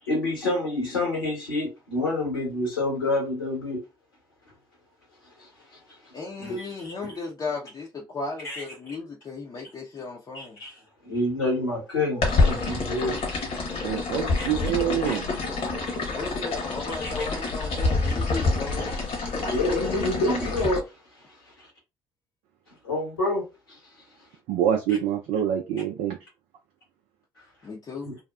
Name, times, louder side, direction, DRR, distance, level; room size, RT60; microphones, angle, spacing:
voice 1, 0.0-3.8 4.4-4.5 5.2-7.2 8.4-8.6 10.3-13.2 14.4-14.5 15.0-15.2 17.0-17.1 19.4-21.7 22.7-24.3 27.4-27.5 28.0-28.2, left 2 dB, 85° left, 1.2 m, -29 dB
voice 2, 6.1-10.6 16.1-18.9 27.6-28.1, left 3 dB, 35° left, 0.6 m, -35 dB
sound 1, 12.2-20.8, left 3 dB, 55° left, 1.0 m, -27 dB
voice 3, 13.8-15.3 24.5-26.2, right 9 dB, 65° right, 0.4 m, -26 dB
2.6 x 2.0 x 2.3 m
hypercardioid pair, 50°, 12 cm